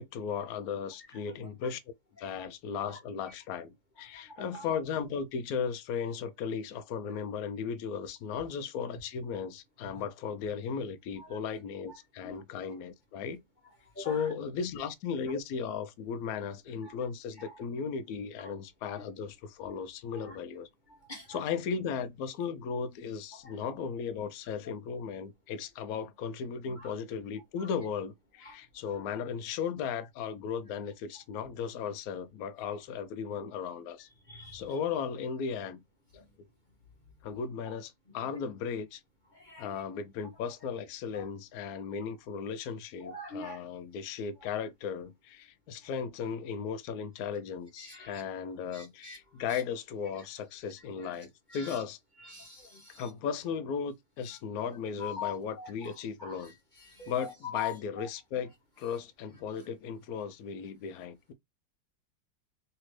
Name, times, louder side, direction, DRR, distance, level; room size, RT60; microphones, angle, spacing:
voice 1, 0.0-1.8 2.2-13.4 14.0-20.7 21.3-34.1 34.5-35.8 36.1-36.2 37.2-39.0 39.6-52.0 53.0-56.5 57.1-58.5 58.8-61.3, left 6 dB, 70° left, 0.9 m, -36 dB
voice 2, 21.1-21.4 23.4-23.6 26.8-26.9 27.6-27.7 28.4-28.6 34.3-34.6 39.3-39.7 41.1-41.3 43.0-43.6 47.8-48.2 48.7-49.2 49.5-49.6 51.0-51.2 51.5-51.8 52.3-53.0 55.0-55.9 56.2-56.5 56.8-58.1, left 5 dB, 35° left, 0.8 m, -43 dB
3.3 x 2.9 x 3.0 m
omnidirectional pair, 1.9 m